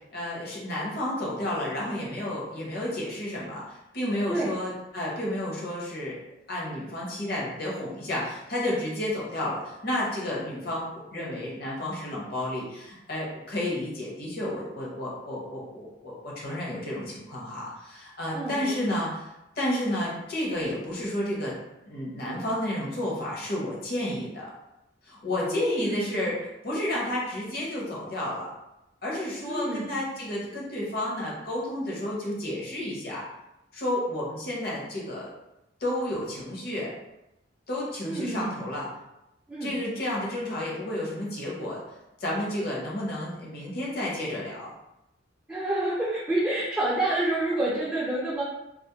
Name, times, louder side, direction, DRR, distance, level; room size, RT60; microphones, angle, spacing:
voice 1, 0.1-6.2 6.5-19.3 19.6-21.5 21.8-24.5 25.1-26.4 26.6-28.5 29.0-33.2 33.7-35.3 35.8-36.9 37.7-38.9 39.6-41.9 42.2-44.7, left 1 dB, 55° left, -5 dB, 0.8 m, -31 dB
voice 2, 18.3-19.0 25.6-26.2 29.5-30.0 38.0-38.6 39.5-39.7 45.5-48.4, right 1 dB, 10° right, -8 dB, 0.4 m, -28 dB
2.4 x 2.0 x 2.8 m, 0.90 s
head